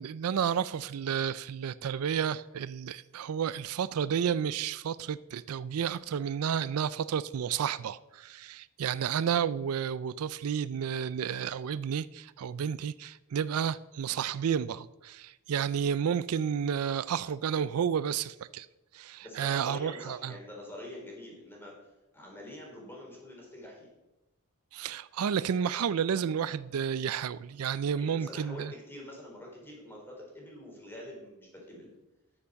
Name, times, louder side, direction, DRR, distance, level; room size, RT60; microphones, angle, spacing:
voice 1, 0.0-18.7 18.9-20.3 24.7-28.7, right 8 dB, 75° right, 0.4 m, -31 dB
voice 2, 19.2-21.9 22.1-23.9 27.9-31.9, left 1 dB, 10° left, 4.0 m, -45 dB
12.5 x 7.0 x 6.4 m
head